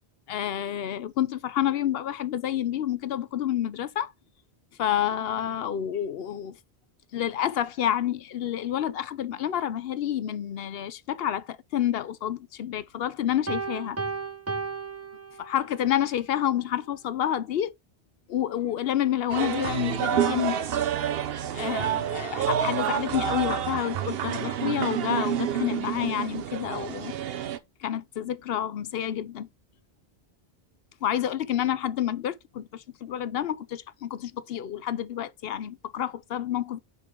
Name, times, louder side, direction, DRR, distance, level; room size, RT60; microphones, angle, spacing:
voice 1, 0.3-4.1 4.8-6.6 7.1-14.0 15.4-17.7 18.3-20.6 21.5-27.1 27.8-29.5 31.0-36.8, left 11 dB, 70° left, 0.8 m, -29 dB
Piano, 13.5-15.9, right 4 dB, 20° right, 0.5 m, -34 dB
sound 1, 19.3-27.6, right 9 dB, 75° right, 0.9 m, -28 dB
6.8 x 4.9 x 3.7 m
omnidirectional pair, 1.0 m